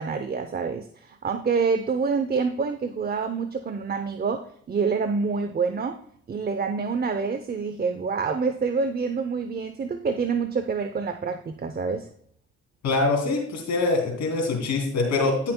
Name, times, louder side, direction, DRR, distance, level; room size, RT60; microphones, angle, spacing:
voice 1, 0.0-6.0 6.3-12.1, right 5 dB, 30° right, 8 dB, 0.7 m, -27 dB
voice 2, 12.8-15.5, left 3 dB, 65° left, 0 dB, 3.0 m, -24 dB
14.5 x 5.7 x 2.2 m, 0.64 s
cardioid pair, 90°, 30 cm